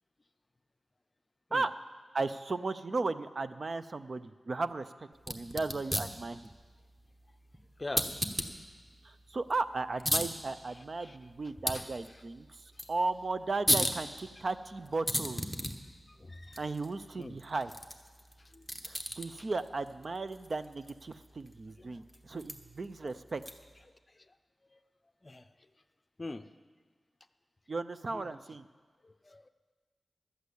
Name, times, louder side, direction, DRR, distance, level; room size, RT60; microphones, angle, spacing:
voice 1, 2.1-4.9 5.3-6.4 9.0-15.5 16.6-17.7 18.8-23.4 27.7-28.7, right 3 dB, 50° right, 12 dB, 0.4 m, -35 dB
sound 1, 5.1-23.8, equal, 5° right, 1.1 m, -38 dB
voice 2, 10.7-11.2 11.7-11.9 12.7-12.9 16.1-16.6 17.2-17.4 18.4-18.7 19.4-19.5 21.8-22.0 23.0-23.1 24.1-24.3 24.7-24.8 25.2-25.5 26.2-26.5 28.1-28.4 29.0-29.5, left 2 dB, 30° left, 10 dB, 0.5 m, -45 dB
12.5 x 8.1 x 8.3 m, 1.4 s
wide cardioid pair, 100°, 0 cm